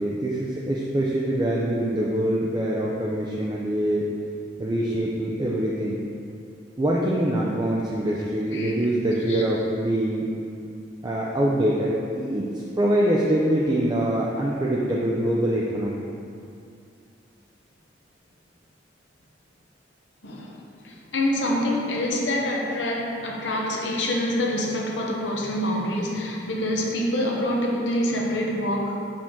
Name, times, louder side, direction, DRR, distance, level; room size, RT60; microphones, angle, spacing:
voice 1, 0.0-4.1 4.6-6.0 6.8-10.2 11.0-12.5 12.8-16.1, right 1 dB, 20° right, -4 dB, 0.4 m, -24 dB
voice 2, 20.8-29.0, left 1 dB, 75° left, -2 dB, 0.9 m, -26 dB
5.4 x 5.0 x 3.6 m, 2.5 s
head